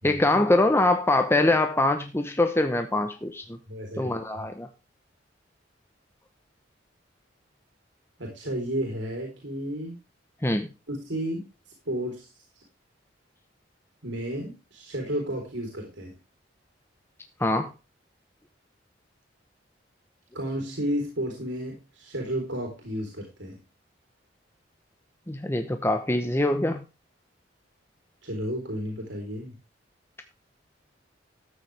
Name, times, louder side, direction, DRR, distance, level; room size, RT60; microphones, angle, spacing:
voice 1, 0.0-3.6 4.0-4.7 10.4-10.7 17.4-17.7 25.3-26.9, left 2 dB, 15° left, 7 dB, 0.9 m, -23 dB
voice 2, 3.7-4.1 8.2-10.0 10.9-11.4 11.9-12.6 14.0-16.1 20.3-23.6 28.2-29.5, equal, 80° right, 1 dB, 3.7 m, -32 dB
13.5 x 8.9 x 3.4 m, 0.28 s
head